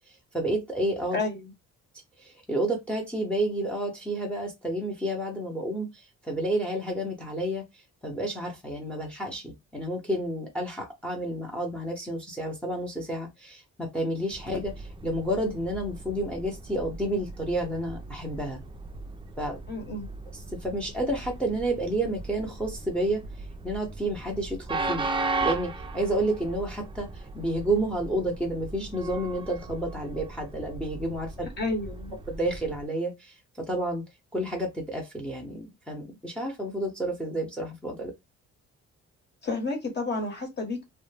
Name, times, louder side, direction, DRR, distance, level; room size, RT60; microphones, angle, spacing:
voice 1, 0.3-1.2 2.2-7.6 8.0-18.6 19.4-19.6 20.6-23.2 23.6-25.1 25.4-31.5 32.3-34.0 34.3-38.1, right 1 dB, 5° left, 0.8 m, -30 dB
voice 2, 1.1-1.5 19.7-20.1 31.6-32.2 39.4-40.8, left 3 dB, 35° left, 1.1 m, -31 dB
Train, 14.3-32.8, right 3 dB, 20° right, 0.3 m, -37 dB
2.2 x 2.1 x 3.2 m
cardioid pair, 90°, 30 cm